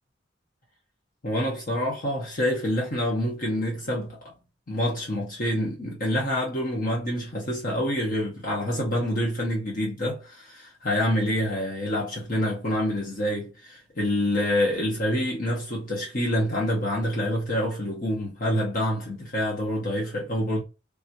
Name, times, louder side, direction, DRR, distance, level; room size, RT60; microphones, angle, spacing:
voice 1, 1.2-4.2 4.7-20.6, left 1 dB, 50° left, 1.0 m, -27 dB
3.4 x 3.0 x 2.6 m
head